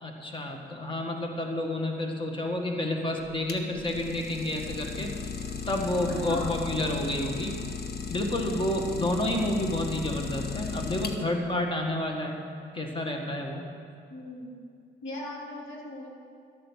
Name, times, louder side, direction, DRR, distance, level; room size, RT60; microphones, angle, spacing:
voice 1, 0.0-5.1 5.7-7.7 8.1-12.4 12.7-13.6, left 1 dB, 25° left, 2 dB, 1.7 m, -30 dB
Idling, 3.2-11.5, left 5 dB, 55° left, 1.1 m, -36 dB
voice 2, 6.3-6.6 14.1-14.6 15.0-16.1, left 1 dB, 75° left, -2 dB, 2.7 m, -38 dB
12.0 x 9.0 x 6.4 m, 2.3 s
cardioid pair, 90°, 20 cm